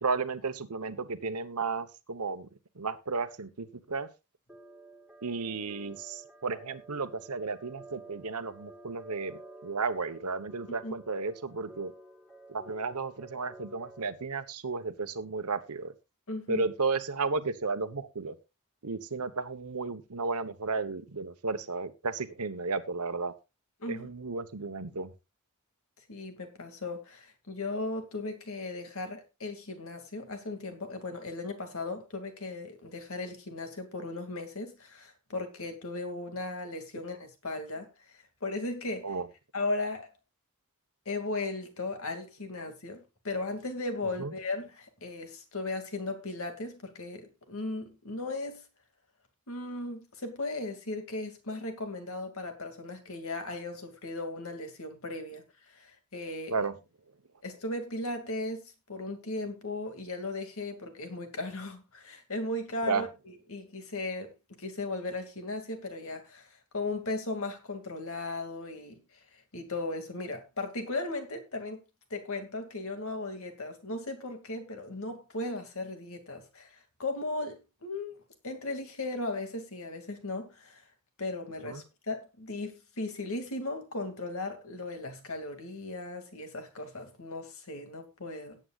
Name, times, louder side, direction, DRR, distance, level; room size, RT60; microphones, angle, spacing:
voice 1, 0.0-2.5 2.7-4.1 5.2-11.9 12.5-15.9 16.5-18.3 18.8-23.3 23.9-25.1 39.0-39.3 44.2-44.3 56.5-56.7 62.8-63.0 81.6-81.8, right 4 dB, 85° right, 1.1 m, -33 dB
sound 1, 4.5-14.1, right 2 dB, 5° left, 2.6 m, -51 dB
voice 2, 16.3-16.6 23.8-24.1 26.1-39.2 39.5-40.1 41.1-48.6 49.5-56.5 57.4-63.1 63.5-64.3 64.6-69.0 69.3-71.8 72.1-78.2 78.4-80.8 81.2-88.6, left 2 dB, 65° left, 2.4 m, -37 dB
18.0 x 8.7 x 2.5 m
head